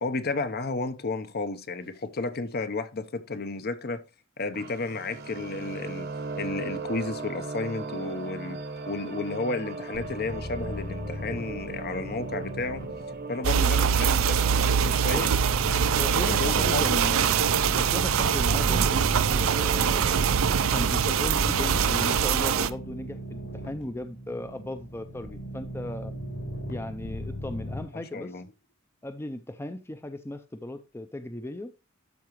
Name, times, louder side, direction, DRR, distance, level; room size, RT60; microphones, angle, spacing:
voice 1, 0.0-4.0 4.4-6.1 6.4-8.6 8.9-12.8 13.3-15.3 16.1-17.0 28.1-28.5, left 3 dB, 50° left, 0.7 m, -32 dB
sound 1, 4.5-16.5, right 4 dB, 50° right, 0.9 m, -38 dB
sound 2, 9.9-27.8, equal, 70° left, 4.3 m, -38 dB
sound 3, 13.4-22.7, right 7 dB, 80° right, 0.5 m, -23 dB
voice 2, 15.9-17.4 17.8-20.4 20.7-26.1 26.7-28.4 29.0-31.7, left 1 dB, 10° left, 0.5 m, -36 dB
12.5 x 4.8 x 3.0 m
head